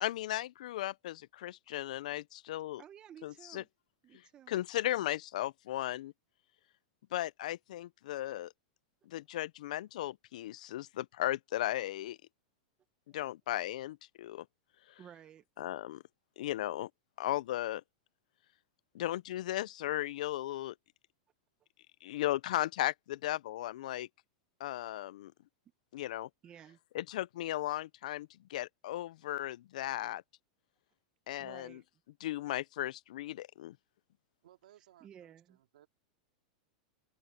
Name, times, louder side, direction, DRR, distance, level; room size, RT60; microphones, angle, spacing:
voice 1, 0.0-2.8 3.2-3.6 4.5-6.1 7.1-8.5 9.1-12.2 13.1-14.5 15.6-16.0 16.4-16.9 17.2-17.8 18.9-20.7 22.0-24.1 24.6-25.3 25.9-26.3 26.9-30.2 31.3-31.8 32.2-33.8, left 14 dB, 75° left, 0.4 m, -36 dB
voice 2, 2.8-3.7 4.0-4.5 13.1-13.2 15.0-15.7 26.4-26.8 31.4-31.8 35.0-35.6, right 9 dB, 20° right, 0.8 m, -54 dB
voice 3, 34.4-35.9, right 13 dB, 85° right, 2.9 m, -62 dB
open air
supercardioid pair, 165°, 4 cm